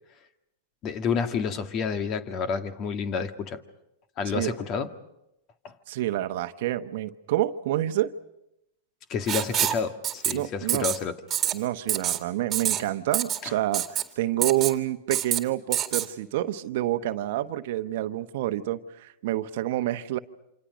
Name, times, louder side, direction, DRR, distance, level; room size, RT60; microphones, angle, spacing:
voice 1, 0.8-3.6 4.2-4.9 5.6-5.7 9.1-11.2 13.4-13.5, left 6 dB, 40° left, 1.9 m, -29 dB
voice 2, 5.9-8.1 10.3-10.9 11.5-20.2, right 14 dB, 65° right, 1.0 m, -28 dB
Writing, 9.3-9.8 10.0-10.3 10.7-11.0 11.3-11.5 11.9-12.2 12.5-12.8 13.1-13.4 13.7-14.0 14.4-14.7 15.1-15.4 15.7-16.1, right 10 dB, 30° right, 2.1 m, -26 dB
28.5 x 26.5 x 5.2 m
hypercardioid pair, 110°, 0 cm